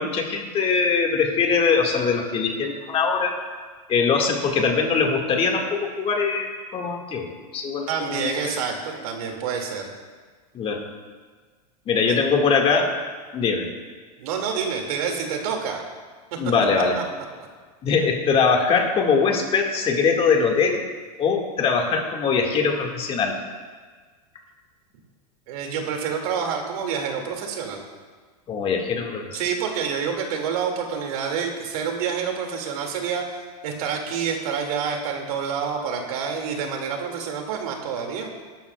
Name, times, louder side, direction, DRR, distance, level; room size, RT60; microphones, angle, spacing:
voice 1, 0.0-3.4 3.9-8.4 10.5-10.8 11.9-12.9 13.3-13.7 16.4-17.0 17.8-20.9 21.2-23.4 28.5-29.4, left 5 dB, 30° left, 1 dB, 1.9 m, -22 dB
voice 2, 7.9-9.9 14.2-15.8 16.3-16.4 17.0-17.1 25.5-27.8 29.3-33.4 33.6-38.3, right 6 dB, 70° right, 2 dB, 2.3 m, -28 dB
20.5 x 12.0 x 2.4 m, 1.5 s
supercardioid pair, 130°, 20 cm